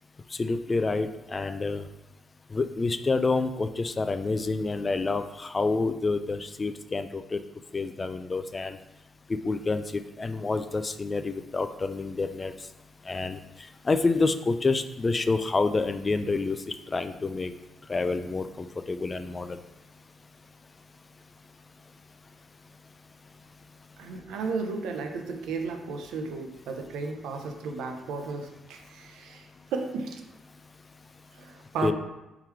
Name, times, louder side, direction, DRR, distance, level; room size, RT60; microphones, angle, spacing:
voice 1, 0.3-1.8 2.5-7.4 7.7-8.8 9.3-12.5 13.1-13.4 13.8-17.5 17.9-19.6 31.8-31.9, left 3 dB, 30° left, 10 dB, 0.3 m, -28 dB
voice 2, 24.0-30.2 31.4-31.9, right 4 dB, 85° right, 4 dB, 0.6 m, -34 dB
3.7 x 3.0 x 4.5 m, 0.97 s
cardioid pair, 90°, 0 cm